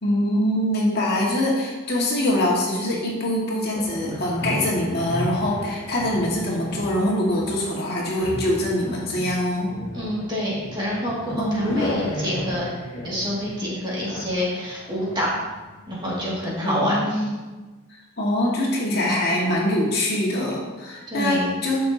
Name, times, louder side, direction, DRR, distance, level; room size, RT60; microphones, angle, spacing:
voice 1, 0.0-9.7 11.4-11.6 16.6-17.4 18.2-21.9, left 1 dB, 50° left, -4 dB, 1.8 m, -23 dB
sound 1, 3.7-16.4, left 1 dB, 30° left, 1.1 m, -34 dB
voice 2, 9.9-12.7 13.0-15.3 15.9-17.3 21.1-21.5, equal, 20° right, -6 dB, 2.2 m, -27 dB
11.0 x 6.7 x 2.8 m, 1.2 s
head